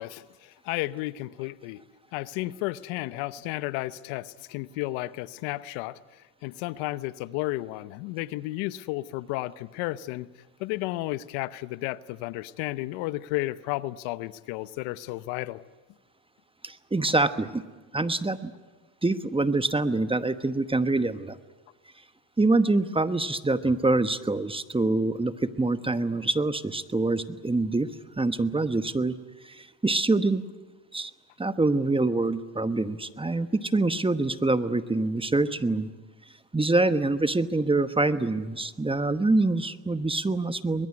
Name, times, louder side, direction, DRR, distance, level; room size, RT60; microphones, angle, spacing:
voice 1, 0.0-1.8 2.1-6.0 6.4-10.3 10.6-15.6 17.1-17.2, left 18 dB, 75° left, 16 dB, 0.9 m, -33 dB
voice 2, 16.6-17.6 17.9-18.5 19.0-21.4 22.4-27.9 28.2-29.1 29.5-30.4 30.9-31.1 31.4-35.9 36.5-40.9, right 2 dB, 10° right, 12 dB, 1.1 m, -25 dB
22.5 x 21.0 x 9.7 m, 1.3 s
supercardioid pair, 80°, 47 cm